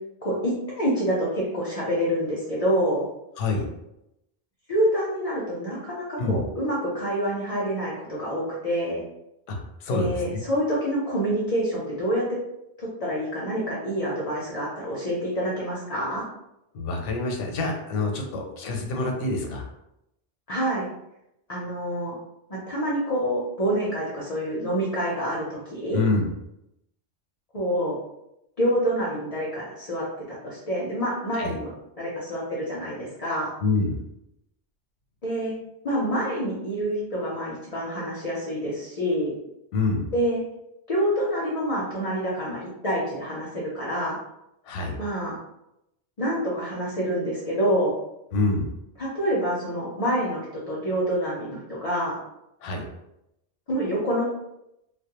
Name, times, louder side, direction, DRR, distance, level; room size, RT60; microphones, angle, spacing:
voice 1, 0.2-3.1 4.7-9.0 9.9-12.4 12.8-16.2 20.5-20.9 21.5-22.2 22.5-26.0 27.5-28.0 28.6-31.7 32.0-33.5 35.2-35.5 35.8-39.3 40.1-40.4 40.9-44.2 45.0-45.4 46.2-47.9 49.0-52.2 53.7-54.2, equal, 45° left, -5 dB, 0.5 m, -27 dB
voice 2, 9.5-10.4 16.7-19.6 25.9-26.3 31.3-31.5 33.6-34.0 39.7-40.0 44.7-45.0 48.3-48.7 52.6-52.8, left 3 dB, 90° left, 2 dB, 0.9 m, -26 dB
2.3 x 2.1 x 2.9 m, 0.86 s
omnidirectional pair, 1.2 m